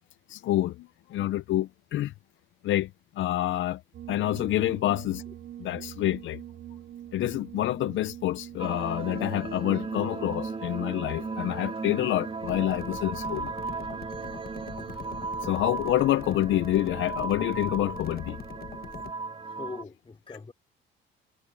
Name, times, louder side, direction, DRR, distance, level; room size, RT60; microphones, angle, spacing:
voice 1, 0.3-2.1 2.6-2.9 3.2-3.8 4.1-5.2 5.6-6.4 7.1-13.5 15.4-18.4, left 14 dB, 75° left, 0.6 m, -27 dB
sound 1, 3.9-18.7, right 11 dB, 70° right, 2.6 m, -46 dB
sound 2, 8.6-19.8, right 4 dB, 30° right, 2.8 m, -36 dB
sound 3, 12.4-19.1, left 8 dB, 50° left, 1.3 m, -43 dB
voice 2, 19.4-20.5, left 4 dB, 25° left, 5.0 m, -42 dB
cardioid pair, 90°, 20 cm